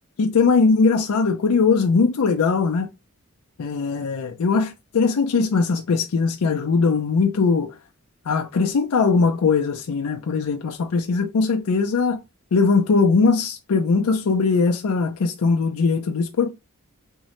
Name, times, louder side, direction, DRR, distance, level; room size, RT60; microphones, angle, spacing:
voice 1, 0.2-2.9 3.6-7.7 8.3-12.2 12.5-16.5, left 4 dB, 90° left, 0.5 m, -20 dB
3.6 x 2.1 x 2.9 m
head